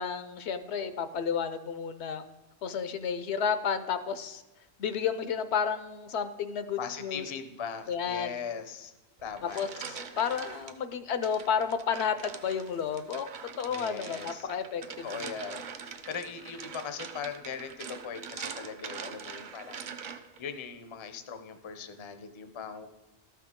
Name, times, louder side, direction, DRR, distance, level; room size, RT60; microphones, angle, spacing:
voice 1, 0.0-2.2 2.6-4.4 4.8-7.2 7.9-8.3 9.5-13.3 13.6-15.1, left 7 dB, 80° left, 11 dB, 0.9 m, -31 dB
voice 2, 6.8-8.9 9.2-9.7 13.7-14.5 15.0-22.9, left 6 dB, 35° left, 8 dB, 0.5 m, -40 dB
sound 1, 9.2-10.7 11.2-20.4, right 6 dB, 55° right, 0.7 m, -43 dB
13.0 x 5.9 x 3.6 m, 1.0 s
omnidirectional pair, 1.1 m